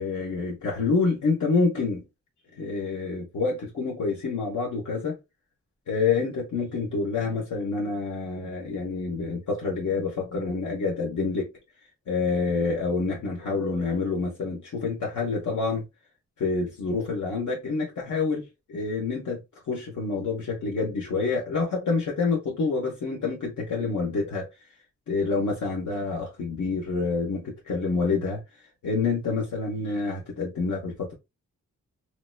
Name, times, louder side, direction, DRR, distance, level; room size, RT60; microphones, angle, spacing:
voice 1, 0.0-2.0 2.6-5.2 5.9-11.5 12.1-15.8 16.4-19.4 19.7-24.5 25.1-28.4 28.8-31.1, left 4 dB, 75° left, 1.1 m, -27 dB
3.2 x 2.9 x 2.2 m
wide cardioid pair, 120°, 30 cm